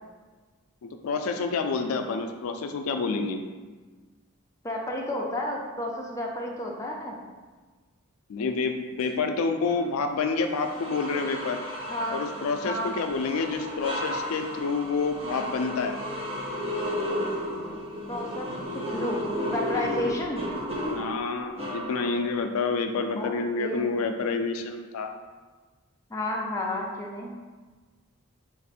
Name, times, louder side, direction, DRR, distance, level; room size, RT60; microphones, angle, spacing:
voice 1, 0.8-3.4 8.3-11.6 12.1-15.9 20.0-20.1 20.9-25.1, left 4 dB, 85° left, 5 dB, 0.4 m, -28 dB
voice 2, 4.6-7.2 11.9-12.2 12.6-12.9 17.6-17.8 18.1-20.4 23.2-23.9 26.1-27.3, left 1 dB, 15° left, -2 dB, 0.5 m, -32 dB
sound 1, 9.7-9.8 10.4-22.4, equal, 30° right, 0.7 m, -33 dB
4.1 x 2.6 x 4.0 m, 1.3 s
head